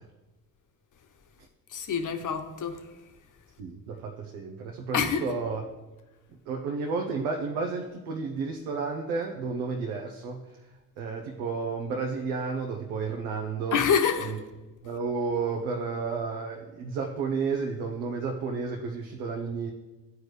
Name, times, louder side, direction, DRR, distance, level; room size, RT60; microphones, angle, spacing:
voice 1, 1.7-2.8 4.9-5.2 13.7-14.3, left 6 dB, 45° left, 1.0 m, -26 dB
voice 2, 3.6-5.6 6.5-10.4 11.0-13.8 14.2-14.4 14.8-19.7, right 4 dB, 85° right, 0.8 m, -32 dB
11.5 x 4.7 x 3.3 m
hypercardioid pair, 50°, 41 cm